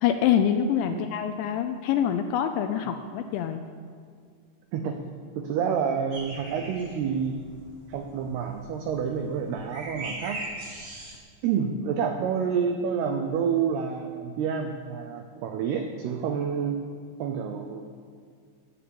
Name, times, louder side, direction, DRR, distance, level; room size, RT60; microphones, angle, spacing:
voice 1, 0.0-3.6, left 9 dB, 80° left, 7 dB, 2.7 m, -25 dB
voice 2, 5.4-7.4 7.9-10.4 11.4-16.8 17.2-17.8, right 7 dB, 90° right, 5 dB, 2.3 m, -28 dB
sound 1, 6.1-11.1, right 2 dB, 30° right, 1.7 m, -40 dB
17.5 x 9.2 x 7.1 m, 2.1 s
omnidirectional pair, 5.8 m